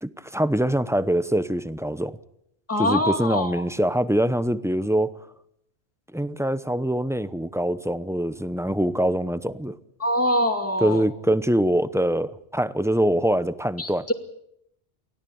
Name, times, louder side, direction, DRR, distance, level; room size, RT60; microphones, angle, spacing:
voice 1, 0.0-2.2 2.8-5.1 6.1-9.8 10.8-14.1, right 1 dB, 5° right, 0.6 m, -24 dB
voice 2, 2.7-3.6 10.0-11.0 13.8-14.1, equal, 10° left, 2.3 m, -24 dB
24.5 x 16.5 x 8.6 m
omnidirectional pair, 1.1 m